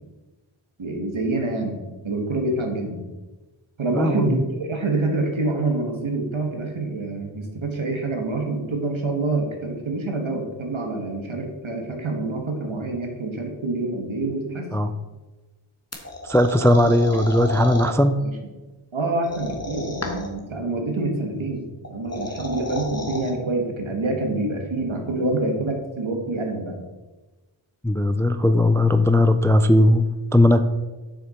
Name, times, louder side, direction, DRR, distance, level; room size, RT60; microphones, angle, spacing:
voice 1, 0.8-1.8 2.0-3.0 3.8-14.7 18.2-18.3 18.9-21.6 21.9-26.7, right 2 dB, 70° right, 3 dB, 1.6 m, -26 dB
voice 2, 4.0-4.3 14.7-14.9 16.2-18.2 27.8-30.6, left 1 dB, 5° left, 10 dB, 0.3 m, -18 dB
Noise In The Woods, 15.9-17.9 19.2-20.4 21.8-23.3, left 2 dB, 30° left, 1.4 m, -32 dB
7.0 x 6.4 x 4.3 m, 1.2 s
wide cardioid pair, 50°, 49 cm